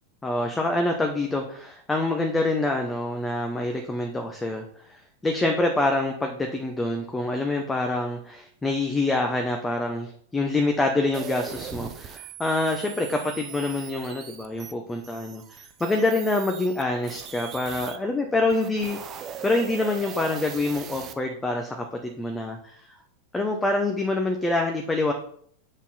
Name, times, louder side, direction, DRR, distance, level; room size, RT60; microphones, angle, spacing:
voice 1, 0.2-22.9 23.3-25.1, left 2 dB, 10° left, 3 dB, 0.9 m, -26 dB
sound 1, 11.1-18.0 18.4-21.1, right 8 dB, 30° right, 0.8 m, -40 dB
8.3 x 5.6 x 4.2 m, 0.62 s
figure-of-eight pair, 90°, 0 cm